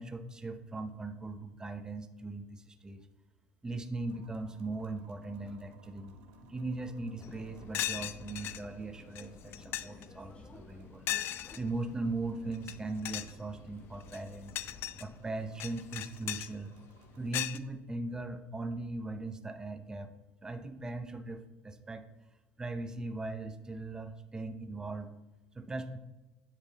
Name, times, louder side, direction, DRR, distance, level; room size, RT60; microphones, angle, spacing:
voice 1, 0.0-3.1 3.6-6.2 6.5-11.1 11.3-14.6 15.0-16.7 17.2-20.1 20.4-22.0 22.6-25.1 25.5-26.0, right 2 dB, 15° right, 8 dB, 0.7 m, -39 dB
sound 1, 4.0-17.3, right 3 dB, 75° right, 1.1 m, -59 dB
sound 2, 7.2-7.3 7.7-8.6 9.1-9.2 9.5-10.0 11.1-11.6 12.5-12.7 13.0-13.3 14.0-15.0 15.6-16.5 17.3-17.6, left 13 dB, 55° left, 0.4 m, -36 dB
Subway metro underground, 7.2-15.2, left 3 dB, 25° left, 0.7 m, -53 dB
10.0 x 3.7 x 4.0 m, 1.1 s
supercardioid pair, 100°, 5 cm